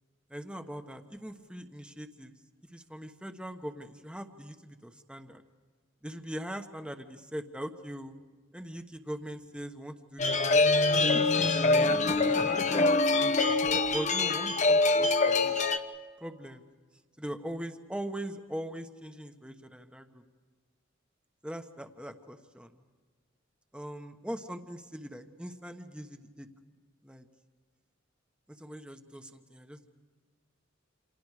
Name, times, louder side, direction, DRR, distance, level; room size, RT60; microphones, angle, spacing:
voice 1, 0.3-2.3 2.7-5.4 6.0-8.1 8.5-13.4 13.9-15.6 16.2-16.7 17.2-20.2 21.4-22.8 23.7-26.5 27.0-27.3 28.6-29.9, equal, 5° right, 7 dB, 1.2 m, -41 dB
sound 1, 10.2-15.8, left 3 dB, 35° left, 0.9 m, -24 dB
28.5 x 27.5 x 4.9 m, 1.5 s
head